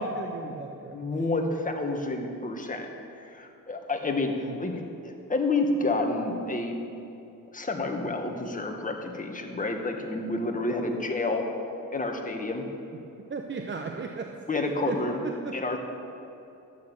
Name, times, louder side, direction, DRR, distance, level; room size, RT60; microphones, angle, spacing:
voice 1, 0.0-1.0 4.5-4.6 13.3-15.6, right 4 dB, 30° right, 3 dB, 0.9 m, -36 dB
voice 2, 0.9-2.9 3.2-6.8 7.5-11.4 11.9-12.7 14.5-15.2 15.5-15.8, left 2 dB, 20° left, 3 dB, 1.8 m, -29 dB
12.5 x 9.2 x 6.4 m, 2.8 s
cardioid pair, 85°, 36 cm